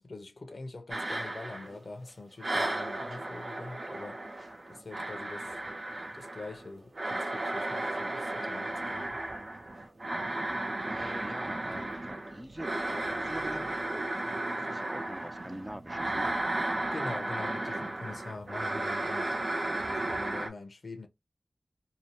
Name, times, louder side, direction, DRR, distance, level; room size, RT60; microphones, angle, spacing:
voice 1, 0.0-4.3 4.7-5.6 6.1-9.2 16.9-19.3 19.9-21.1, left 3 dB, 70° left, 0.7 m, -44 dB
sound 1, 0.9-2.1 2.4-20.5, right 2 dB, 80° right, 0.9 m, -34 dB
voice 2, 10.8-16.3, right 1 dB, 15° right, 0.4 m, -44 dB
2.7 x 2.0 x 3.2 m
wide cardioid pair, 50°, 0 cm